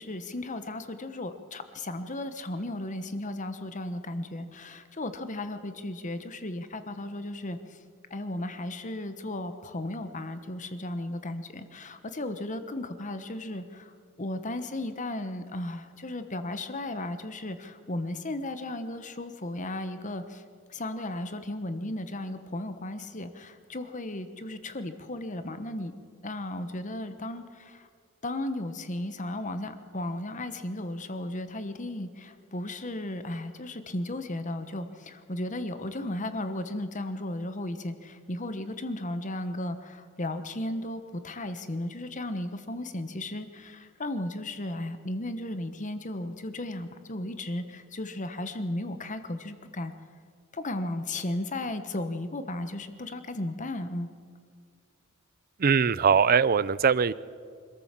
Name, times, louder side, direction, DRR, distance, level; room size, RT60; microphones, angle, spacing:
voice 1, 0.0-7.6 8.1-13.9 14.2-20.4 20.7-25.9 26.2-27.9 28.2-49.9 50.5-54.1, left 1 dB, 35° left, 9 dB, 1.2 m, -35 dB
voice 2, 55.6-57.1, right 6 dB, 45° right, 19 dB, 0.5 m, -21 dB
25.5 x 14.0 x 7.5 m, 2.1 s
head